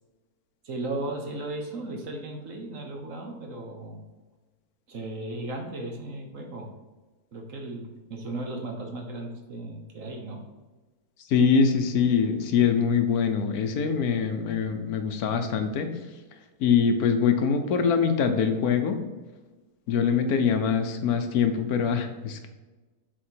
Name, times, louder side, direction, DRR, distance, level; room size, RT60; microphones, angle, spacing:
voice 1, 0.6-4.0 4.9-6.7 7.3-10.4, right 2 dB, 55° right, 2 dB, 1.4 m, -36 dB
voice 2, 11.3-15.9 16.6-19.0 19.9-22.5, left 6 dB, 70° left, 7 dB, 1.2 m, -23 dB
7.4 x 4.3 x 4.5 m, 1.2 s
omnidirectional pair, 1.7 m